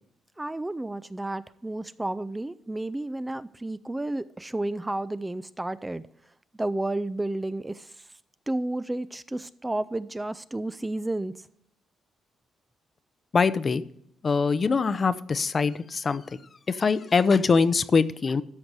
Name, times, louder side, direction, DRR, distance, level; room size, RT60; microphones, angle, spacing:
voice 1, 0.4-6.0 6.6-7.9 8.5-11.3, right 2 dB, 15° right, 0.3 m, -31 dB
voice 2, 13.3-13.8 14.2-16.2 16.7-18.4, left 5 dB, 40° left, 0.5 m, -23 dB
13.0 x 4.7 x 6.6 m
cardioid pair, 90°, 0 cm